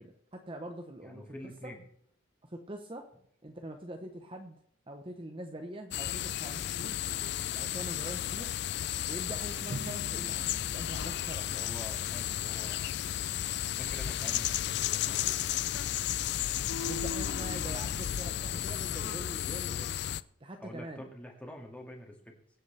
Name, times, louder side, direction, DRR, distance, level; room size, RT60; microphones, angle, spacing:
voice 1, 0.0-1.3 1.6-1.7 2.4-3.1 3.4-4.6 4.9-7.0 7.4-8.5 9.1-11.7 16.8-19.9 20.4-21.0, right 1 dB, 25° right, 4 dB, 0.9 m, -44 dB
voice 2, 1.0-1.8 8.3-8.6 11.4-13.3 13.8-16.0 17.3-17.9 20.6-22.4, equal, 5° left, 1 dB, 2.0 m, -48 dB
sound 1, 5.9-20.2, left 11 dB, 50° left, 0.4 m, -33 dB
Drum, 9.7-12.4, right 2 dB, 50° right, 0.6 m, -46 dB
23.5 x 8.2 x 3.4 m, 0.69 s
head